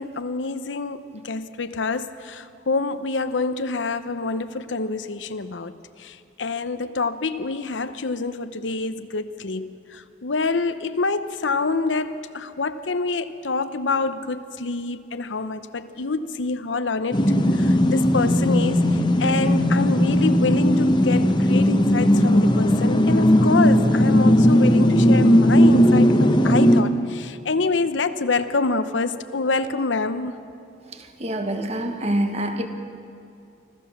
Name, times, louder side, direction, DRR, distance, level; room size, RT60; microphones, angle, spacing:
voice 1, 0.0-5.7 6.0-17.2 17.5-30.4, left 3 dB, 90° left, 11 dB, 0.9 m, -26 dB
sound 1, 17.1-26.8, equal, 25° left, 1.0 m, -17 dB
voice 2, 31.2-32.7, right 1 dB, 35° right, 6 dB, 1.4 m, -25 dB
25.5 x 15.0 x 7.3 m, 2.6 s
head